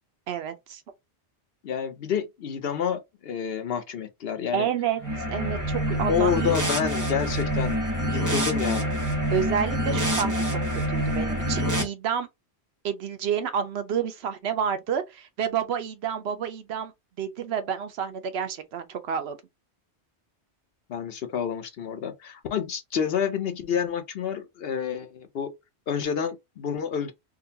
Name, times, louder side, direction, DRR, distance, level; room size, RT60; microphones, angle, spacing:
voice 1, 0.3-0.8 4.5-5.0 5.3-6.5 9.3-12.3 12.8-16.9 17.2-19.4, right 8 dB, 70° right, 0.8 m, -29 dB
voice 2, 1.6-4.7 6.1-8.9 20.9-25.5 25.9-27.1, left 7 dB, 65° left, 0.8 m, -29 dB
sound 1, 5.0-11.8, equal, 20° right, 0.7 m, -26 dB
3.7 x 2.3 x 2.6 m
omnidirectional pair, 1.1 m